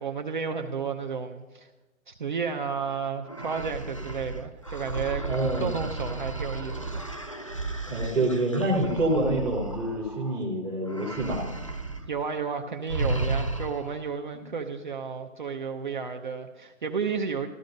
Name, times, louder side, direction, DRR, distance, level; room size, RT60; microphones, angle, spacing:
voice 1, 0.0-1.7 2.1-5.3 5.6-7.1 12.1-17.5, right 6 dB, 35° right, 3 dB, 0.7 m, -32 dB
sound 1, 3.2-10.4 10.8-12.1 12.3-12.5 12.9-14.0, right 2 dB, 25° left, 0.4 m, -33 dB
voice 2, 5.2-5.8 7.9-11.4, right 1 dB, 5° right, -5 dB, 0.8 m, -27 dB
13.5 x 12.5 x 5.3 m, 1.1 s
hypercardioid pair, 170°, 40 cm